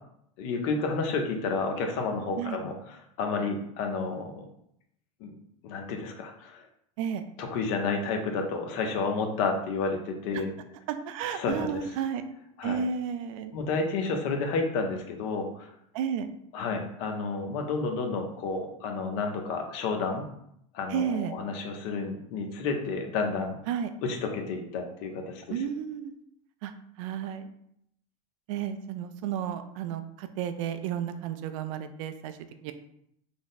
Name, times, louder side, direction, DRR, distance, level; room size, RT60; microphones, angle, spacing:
voice 1, 0.4-4.5 5.2-5.3 5.6-6.6 7.4-10.5 11.3-11.9 12.6-12.8 13.5-15.7 16.5-20.2 20.7-23.6 24.0-25.6, left 4 dB, 65° left, 4 dB, 0.7 m, -31 dB
voice 2, 10.9-12.3 12.6-13.5 15.9-16.3 20.9-21.3 23.7-23.9 25.5-26.1 26.6-26.7 27.0-27.5 28.5-32.3 32.6-32.7, right 8 dB, 70° right, 10 dB, 0.4 m, -32 dB
3.4 x 2.0 x 4.0 m, 0.74 s
supercardioid pair, 120°, 18 cm